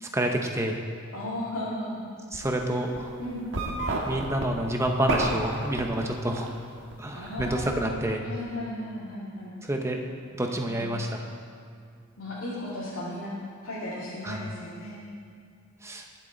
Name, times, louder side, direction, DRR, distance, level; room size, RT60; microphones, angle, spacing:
voice 1, 0.0-0.8 2.3-3.2 4.1-6.5 7.0-8.3 9.6-10.0 10.3-11.3 14.2-14.4 15.8-16.0, right 1 dB, 15° right, 2 dB, 0.9 m, -28 dB
voice 2, 1.1-2.0 2.7-2.8 3.2-3.5 7.1-9.5 10.6-10.9 12.2-13.3 13.6-15.0, left 1 dB, 75° left, -9 dB, 2.4 m, -35 dB
sound 1, 2.3-2.6 3.0-6.5 6.8-7.8, right 2 dB, 60° right, 1.5 m, -30 dB
21.0 x 7.2 x 4.0 m, 2.2 s
head